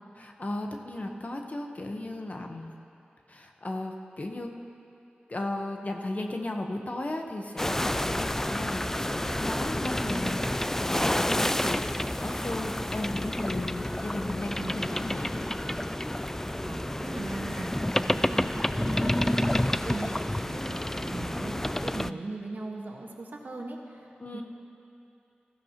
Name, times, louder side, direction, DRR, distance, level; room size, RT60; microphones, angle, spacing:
voice 1, 0.2-2.7 3.3-4.5 5.3-11.9 12.2-15.5 24.2-24.4, left 2 dB, 45° left, 3 dB, 1.1 m, -35 dB
sound 1, 7.6-22.1, left 1 dB, 10° left, 0.3 m, -29 dB
voice 2, 16.6-17.7 18.0-24.4, right 2 dB, 65° right, -1 dB, 1.5 m, -38 dB
17.0 x 14.5 x 3.0 m, 2.7 s
cardioid pair, 45°, 3 cm